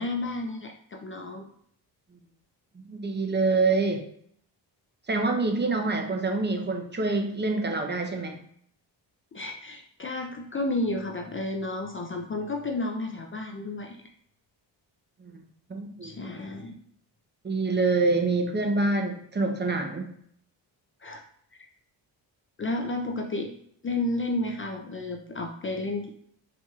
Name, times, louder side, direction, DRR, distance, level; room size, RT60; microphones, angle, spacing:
voice 1, 0.0-1.5 9.3-14.0 16.0-16.8 21.0-21.2 22.6-23.5 23.8-26.1, left 2 dB, 30° left, 3 dB, 0.4 m, -31 dB
voice 2, 2.8-4.0 5.1-8.4 15.2-15.3 15.7-16.1 17.4-20.2, right 3 dB, 25° right, 3 dB, 0.7 m, -26 dB
4.5 x 2.8 x 2.4 m, 0.65 s
cardioid pair, 70°, 46 cm